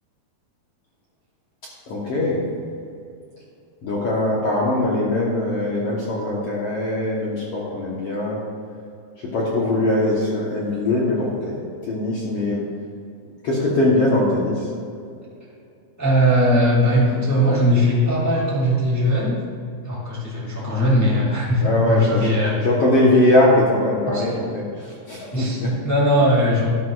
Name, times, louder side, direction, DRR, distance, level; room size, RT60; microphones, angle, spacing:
voice 1, 1.9-2.4 3.8-8.4 9.3-12.6 13.4-14.7 21.6-22.4 22.6-25.7, left 1 dB, 75° left, -5 dB, 1.4 m, -21 dB
voice 2, 16.0-19.4 19.8-22.6 24.1-24.2 25.3-26.7, equal, 15° left, -6 dB, 0.5 m, -19 dB
12.5 x 11.0 x 2.4 m, 2.5 s
omnidirectional pair, 4.5 m